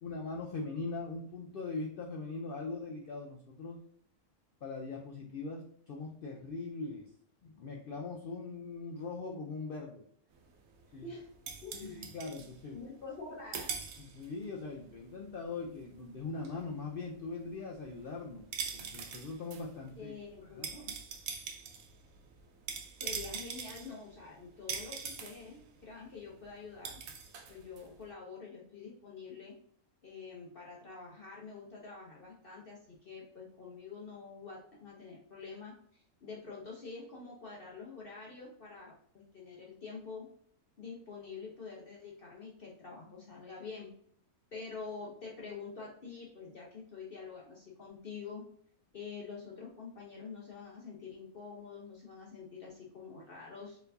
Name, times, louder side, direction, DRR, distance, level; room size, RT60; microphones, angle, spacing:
voice 1, 0.0-3.8 4.6-7.1 7.4-10.0 10.9-11.1 11.7-12.8 14.0-18.4 18.7-20.1 20.5-20.8, left 3 dB, 85° left, 1 dB, 0.4 m, -41 dB
sound 1, 10.4-13.3 13.5-14.5 14.8-28.1, right 6 dB, 70° right, 1.0 m, -43 dB
voice 2, 11.0-11.3 11.6-12.2 12.7-13.8 20.0-20.9 23.0-27.0 27.5-29.5 30.0-40.3 40.8-43.9 44.5-48.4 48.9-53.8, left 4 dB, 50° left, -3 dB, 0.8 m, -47 dB
4.4 x 3.3 x 2.6 m, 0.64 s
omnidirectional pair, 1.6 m